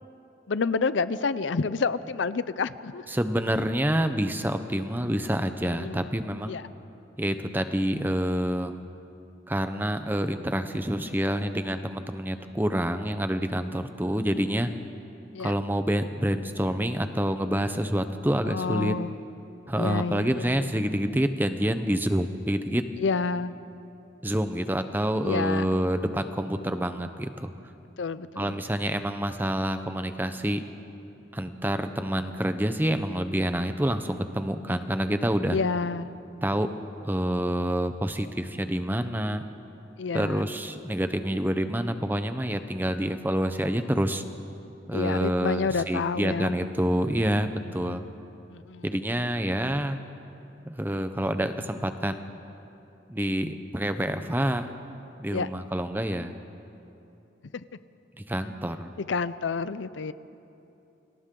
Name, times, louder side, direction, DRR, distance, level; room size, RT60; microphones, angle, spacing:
voice 1, 0.5-3.1 5.7-6.1 6.5-6.7 15.3-15.5 18.4-19.2 19.7-20.8 23.0-23.6 25.2-25.7 28.0-28.7 35.5-36.2 40.0-40.5 44.9-46.5 47.8-48.1 48.5-48.9 55.3-55.5 57.5-57.6 59.1-60.1, left 4 dB, 80° left, 15 dB, 0.6 m, -29 dB
voice 2, 3.1-6.6 7.2-8.9 9.5-14.7 15.4-18.9 19.7-22.8 24.2-27.5 28.4-30.6 31.3-35.6 36.4-36.7 37.0-39.4 40.1-44.2 44.9-48.0 48.8-50.0 50.6-52.3 53.1-54.7 55.2-56.3 58.3-58.9, equal, 10° right, 9 dB, 0.7 m, -27 dB
29.5 x 25.5 x 3.8 m, 2.8 s
head